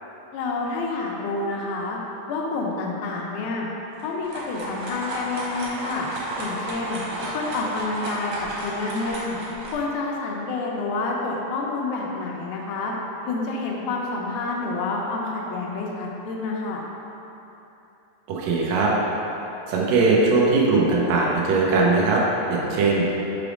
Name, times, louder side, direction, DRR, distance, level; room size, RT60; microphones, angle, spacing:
voice 1, 0.3-2.0 2.3-3.7 4.0-6.1 6.4-7.0 7.3-9.4 9.7-12.9 13.3-16.8, left 3 dB, 85° left, -2 dB, 2.5 m, -28 dB
sound 1, 3.9-9.8, right 1 dB, 70° right, 2.6 m, -33 dB
voice 2, 18.3-18.9 19.7-22.2 22.5-23.1, right 3 dB, 85° right, -4 dB, 1.6 m, -20 dB
6.0 x 3.4 x 5.0 m, 3.0 s
omnidirectional pair, 4.1 m